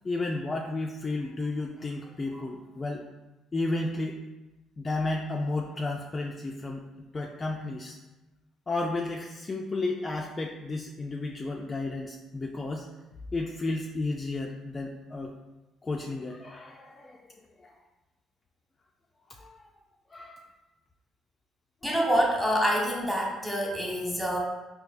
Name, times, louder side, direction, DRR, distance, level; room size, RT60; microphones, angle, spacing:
voice 1, 0.0-3.0 3.5-4.2 4.8-6.9 7.1-8.0 8.7-12.9 13.3-15.3 15.8-17.2 17.6-17.8 19.3-19.7 20.1-20.4 21.8-22.0, left 2 dB, 30° left, 0 dB, 0.3 m, -32 dB
voice 2, 21.8-24.4, equal, 5° right, -3 dB, 1.1 m, -26 dB
4.1 x 2.2 x 2.5 m, 1.1 s
supercardioid pair, 60°, 0 cm